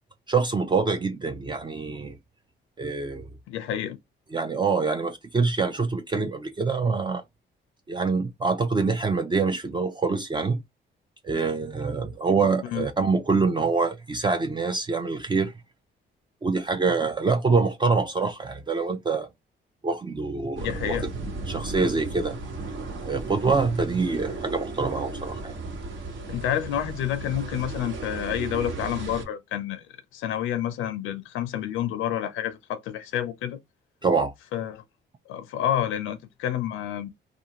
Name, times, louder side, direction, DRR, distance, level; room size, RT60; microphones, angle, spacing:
voice 1, 0.3-2.1 2.8-3.2 4.3-7.2 7.9-10.6 11.2-15.5 16.4-19.3 19.8-21.0 21.5-22.4 23.1-25.5 34.0-34.3, right 4 dB, 25° right, 0.4 m, -25 dB
voice 2, 3.5-4.0 12.6-12.9 20.6-21.1 26.3-29.8 30.1-33.6 34.5-34.8 35.3-37.1, left 10 dB, 90° left, 0.5 m, -29 dB
sound 1, 20.6-29.2, right 3 dB, 65° right, 1.1 m, -35 dB
2.5 x 2.4 x 2.9 m
cardioid pair, 90°, 20 cm